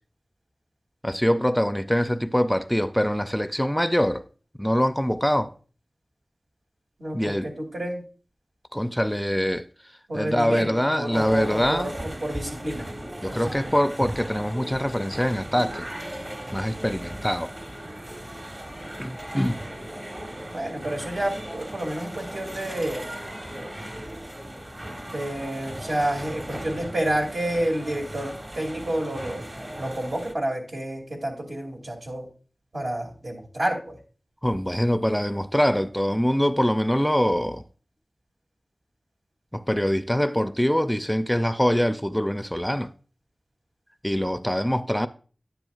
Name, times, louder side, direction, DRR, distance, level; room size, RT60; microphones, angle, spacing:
voice 1, 1.0-4.2 4.6-5.5 7.1-7.5 8.7-9.7 10.1-11.9 13.2-15.9 16.5-17.5 19.0-19.6 34.4-37.6 39.5-42.9 44.0-45.1, equal, 5° left, 0.4 m, -24 dB
voice 2, 7.0-8.0 10.1-12.9 13.3-13.7 20.5-23.1 24.9-29.4 29.8-32.3 32.7-34.0, right 1 dB, 80° right, 2.6 m, -29 dB
sound 1, 11.1-30.3, right 1 dB, 40° right, 1.2 m, -37 dB
10.5 x 9.4 x 2.4 m
wide cardioid pair, 60°, 0 cm